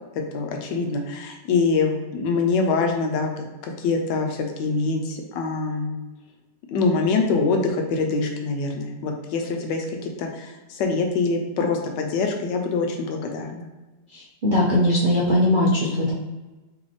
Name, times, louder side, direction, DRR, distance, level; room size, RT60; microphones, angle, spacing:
voice 1, 0.3-5.9 6.7-13.7, left 4 dB, 75° left, 2 dB, 1.2 m, -24 dB
voice 2, 14.1-16.1, left 1 dB, 70° right, -5 dB, 0.4 m, -20 dB
3.4 x 3.2 x 3.9 m, 1.1 s
omnidirectional pair, 2.0 m